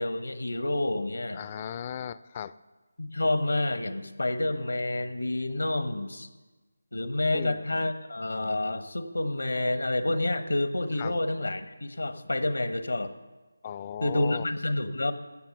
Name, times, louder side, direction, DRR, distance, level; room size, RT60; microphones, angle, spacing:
voice 1, 0.0-1.4 3.0-6.3 6.9-13.1 14.0-15.1, left 2 dB, 80° left, 10 dB, 1.2 m, -29 dB
voice 2, 1.3-2.5 7.3-7.6 11.0-11.2 13.6-14.4, left 9 dB, 25° left, 16 dB, 0.4 m, -36 dB
16.0 x 7.0 x 6.7 m, 1.2 s
figure-of-eight pair, 160°, 0 cm